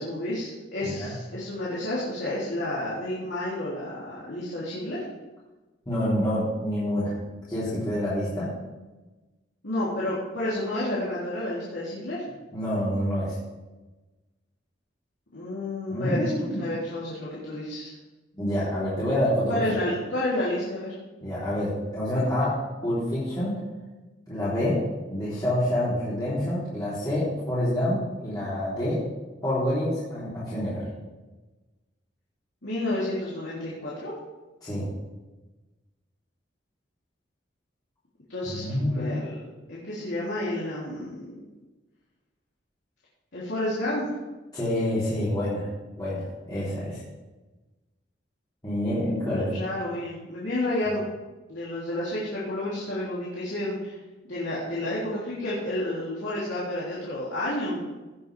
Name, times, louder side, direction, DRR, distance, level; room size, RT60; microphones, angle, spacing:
voice 1, 0.0-5.0 9.6-12.2 15.3-16.3 16.6-17.9 19.5-20.9 32.6-34.2 38.3-39.4 39.7-41.4 43.3-44.1 49.3-51.0 51.5-54.0 54.2-57.8, left 1 dB, 85° left, -9 dB, 3.3 m, -30 dB
voice 2, 0.8-1.1 5.9-7.1 7.5-8.5 12.5-13.4 15.9-16.6 18.4-19.6 21.2-23.6 24.3-24.8 25.1-29.0 29.4-30.9 34.6-34.8 38.4-39.2 44.5-45.7 46.0-47.0 48.6-49.5, left 1 dB, 25° left, -12 dB, 3.8 m, -27 dB
17.5 x 7.8 x 3.5 m, 1.2 s
head